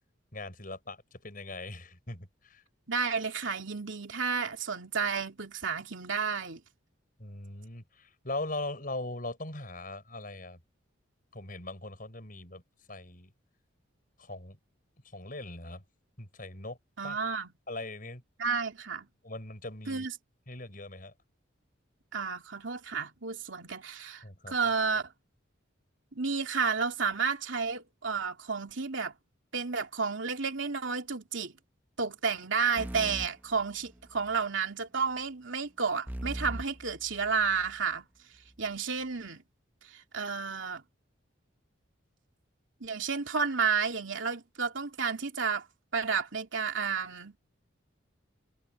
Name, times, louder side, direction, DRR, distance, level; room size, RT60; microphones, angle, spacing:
voice 1, 0.3-2.6 7.2-10.6 11.3-12.6 12.9-13.3 14.2-14.6 15.0-15.8 16.2-16.8 17.0-17.2 17.7-18.2 19.2-20.1 20.5-21.1 24.2-24.6, left 2 dB, 45° left, 6.4 m, -40 dB
voice 2, 2.9-6.6 17.0-17.5 18.4-19.1 19.9-20.1 22.1-25.1 26.1-29.1 29.5-31.5 32.0-38.1 38.6-39.4 39.8-40.8 42.8-45.7 45.9-47.4, right 5 dB, 70° right, 2.8 m, -31 dB
sound 1, 32.8-34.4 36.1-37.8, equal, 10° right, 0.7 m, -41 dB
head